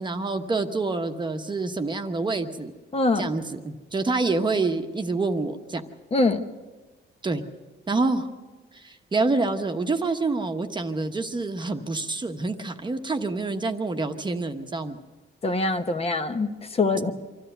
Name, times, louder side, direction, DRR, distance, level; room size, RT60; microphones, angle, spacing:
voice 1, 0.0-2.7 3.2-5.8 7.2-7.4 7.9-8.3 8.7-15.0, right 3 dB, 25° right, 6 dB, 1.0 m, -27 dB
voice 2, 2.9-3.3 6.1-6.4 15.4-17.1, left 3 dB, 30° left, 7 dB, 1.0 m, -24 dB
25.0 x 13.5 x 7.9 m, 1.3 s
wide cardioid pair, 150°, 20 cm